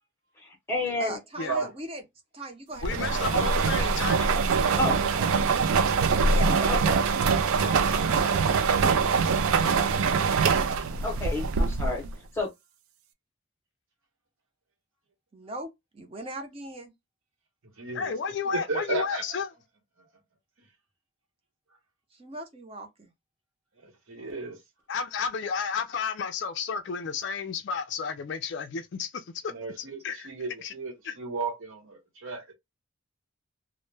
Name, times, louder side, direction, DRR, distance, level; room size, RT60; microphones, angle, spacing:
voice 1, 0.4-1.2 4.5-5.0 6.7-7.0 10.8-12.5, left 2 dB, 10° left, 0.7 m, -31 dB
voice 2, 1.0-2.0 2.3-3.9 4.5-7.0 7.6-8.6 10.1-10.3 15.3-16.9 22.1-23.1, right 1 dB, 25° right, 0.5 m, -40 dB
voice 3, 2.8-4.3 17.9-19.5 24.9-29.5 30.0-30.3 30.6-30.7 31.0-31.1, left 6 dB, 55° left, 0.3 m, -32 dB
sound 1, 2.8-12.1, right 5 dB, 90° right, 0.3 m, -24 dB
voice 4, 17.6-19.4 20.0-20.1 20.6-20.7 23.8-24.6 29.5-32.5, right 4 dB, 70° right, 0.9 m, -35 dB
2.1 x 2.0 x 3.1 m
head